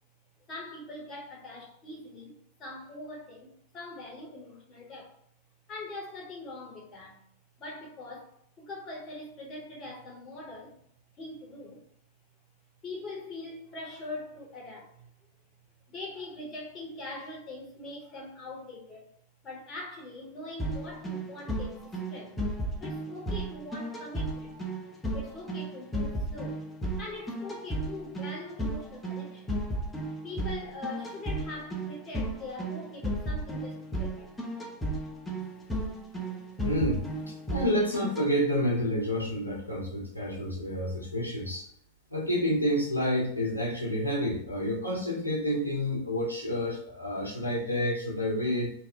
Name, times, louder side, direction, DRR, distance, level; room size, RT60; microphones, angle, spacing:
voice 1, 0.5-5.2 5.7-7.2 7.6-10.7 11.2-11.8 12.8-15.1 15.9-19.1 19.4-22.5 22.8-24.6 25.1-26.6 27.0-29.7 30.2-34.3 35.3-35.4, left 2 dB, 30° left, 0.9 m, -42 dB
sound 1, 20.6-38.3, right 1 dB, 10° left, 0.6 m, -34 dB
voice 2, 36.6-41.7 42.1-48.7, equal, 90° left, 0.6 m, -29 dB
2.8 x 2.0 x 3.5 m
figure-of-eight pair, 90°, 0 cm